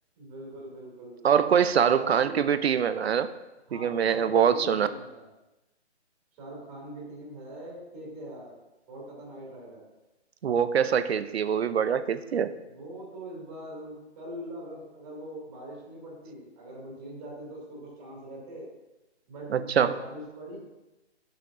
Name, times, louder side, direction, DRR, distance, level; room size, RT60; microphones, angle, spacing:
voice 1, 0.1-1.2 1.8-2.5 3.7-5.3 6.4-8.6 8.9-9.8 12.2-18.7 19.3-20.6, right 1 dB, 20° right, -5 dB, 2.6 m, -42 dB
voice 2, 1.2-3.3 3.7-4.9 10.4-12.5 19.5-19.9, right 8 dB, 65° right, 12 dB, 0.6 m, -24 dB
11.0 x 5.8 x 2.6 m, 1.0 s
hypercardioid pair, 155°, 35 cm